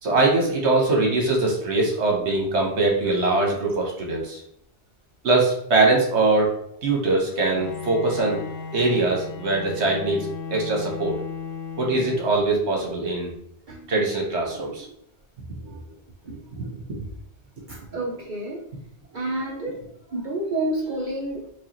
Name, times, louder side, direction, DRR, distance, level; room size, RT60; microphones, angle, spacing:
voice 1, 0.0-4.4 5.2-6.5 6.8-8.4 8.7-11.2 11.8-13.3 13.9-14.9 15.7-15.8 16.2-16.7, right 2 dB, 75° right, -1 dB, 1.3 m, -22 dB
Bowed string instrument, 7.3-12.7, left 5 dB, 85° left, 0.9 m, -36 dB
voice 2, 17.7-18.6 19.1-19.8 20.1-21.4, right 1 dB, 55° right, -1 dB, 0.7 m, -29 dB
4.7 x 2.4 x 3.0 m, 0.70 s
omnidirectional pair, 1.1 m